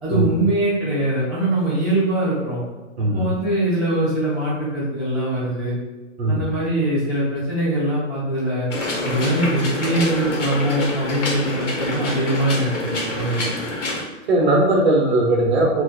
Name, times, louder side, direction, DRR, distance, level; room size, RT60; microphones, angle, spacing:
voice 1, 0.0-2.6 3.1-5.7 6.3-8.7 9.0-13.5, right 1 dB, ahead, -19 dB, 0.5 m, -22 dB
voice 2, 3.0-3.3 6.2-6.4 14.3-15.8, right 1 dB, 55° right, 0 dB, 0.9 m, -18 dB
sound 1, 8.7-14.0, left 2 dB, 65° left, 1.1 m, -27 dB
4.1 x 2.5 x 2.2 m, 1.2 s
hypercardioid pair, 160°, 39 cm